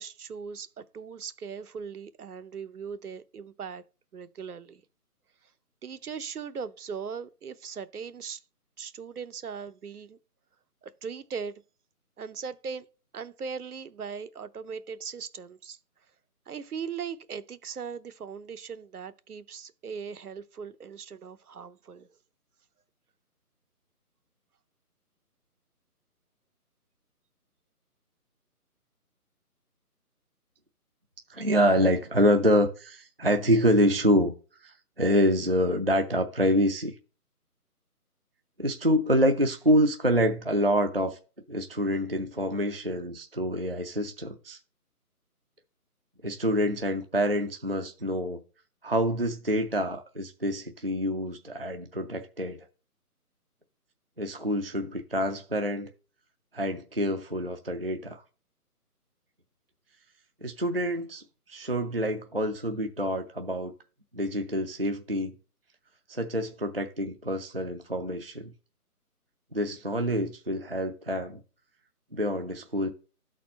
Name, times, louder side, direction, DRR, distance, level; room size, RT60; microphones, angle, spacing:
voice 1, 0.0-3.8 4.1-4.8 5.8-8.4 8.8-10.2 10.8-11.6 12.2-12.9 13.1-15.8 16.5-22.1, right 6 dB, 75° right, 0.8 m, -39 dB
voice 2, 31.3-34.3 34.6-36.9 38.6-41.2 41.5-44.6 46.2-48.4 48.8-52.6 54.2-55.9 56.5-58.2 60.4-61.2 61.5-63.7 64.1-65.3 66.1-68.5 69.5-71.4 72.1-72.9, equal, 40° right, 0.4 m, -26 dB
12.0 x 4.2 x 4.1 m
hypercardioid pair, 170°, 46 cm